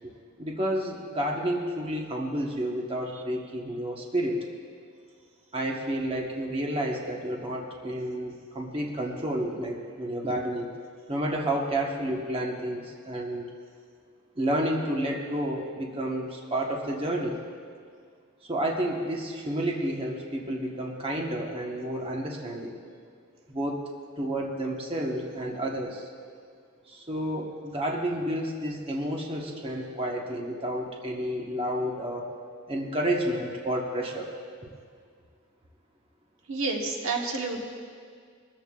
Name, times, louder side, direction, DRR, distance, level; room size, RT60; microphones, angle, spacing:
voice 1, 0.4-4.4 5.5-10.7 11.1-13.4 14.4-17.4 18.4-22.8 23.5-23.8 24.2-26.1 26.9-32.3 32.7-34.3, right 1 dB, 25° right, -1 dB, 1.2 m, -30 dB
voice 2, 36.5-37.6, right 3 dB, 65° right, 1 dB, 1.3 m, -29 dB
21.0 x 14.0 x 2.4 m, 2.1 s
head